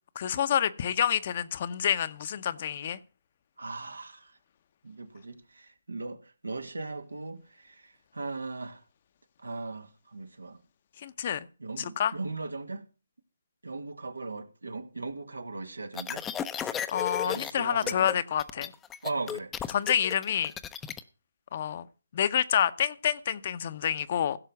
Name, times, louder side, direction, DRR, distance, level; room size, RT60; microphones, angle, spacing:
voice 1, 0.2-3.0 11.0-11.5 11.8-12.1 16.9-18.7 19.7-20.5 21.5-21.9 22.1-24.4, left 9 dB, 45° left, 0.8 m, -28 dB
voice 2, 3.6-4.3 4.8-8.8 9.4-10.6 11.6-12.8 13.6-16.3 17.2-18.2 19.0-19.5, right 3 dB, 90° right, 1.9 m, -38 dB
sound 1, 15.9-17.5 17.8-18.1 18.4-21.0, left 9 dB, 10° left, 0.6 m, -34 dB
16.0 x 6.7 x 5.9 m
figure-of-eight pair, 150°, 0 cm